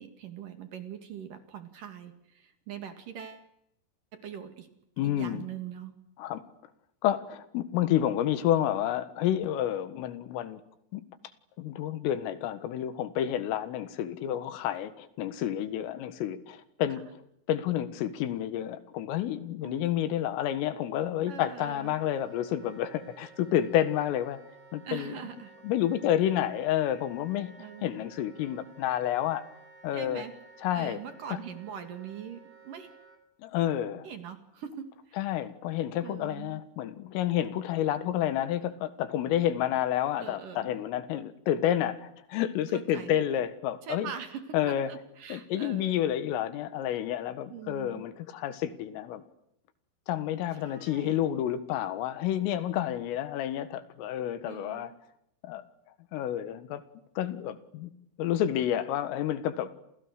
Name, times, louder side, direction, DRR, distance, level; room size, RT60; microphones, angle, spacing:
voice 1, 0.0-3.5 4.1-4.7 5.0-6.0 16.9-17.0 19.6-20.1 21.3-22.0 24.8-25.5 27.6-28.0 29.9-30.3 30.7-32.9 34.0-35.2 36.0-36.6 40.2-40.7 42.7-43.2 43.8-46.0 47.5-48.0 50.5-51.2 54.4-55.0, right 8 dB, 50° right, 8 dB, 2.9 m, -42 dB
voice 2, 5.0-5.4 6.2-6.4 7.0-10.6 10.9-11.0 11.6-17.0 17.5-24.4 24.7-25.2 25.6-27.5 27.8-29.5 29.8-30.2 30.6-31.0 33.4-34.1 35.2-44.1 44.5-44.9 45.3-49.2 50.1-54.9 55.4-55.6 56.1-56.8 57.2-57.9 58.2-59.7, left 11 dB, 80° left, 12 dB, 4.2 m, -29 dB
Wind instrument woodwind instrument, 21.7-33.2, right 3 dB, 25° right, 4.0 m, -54 dB
29.0 x 29.0 x 6.6 m, 0.78 s
omnidirectional pair, 5.8 m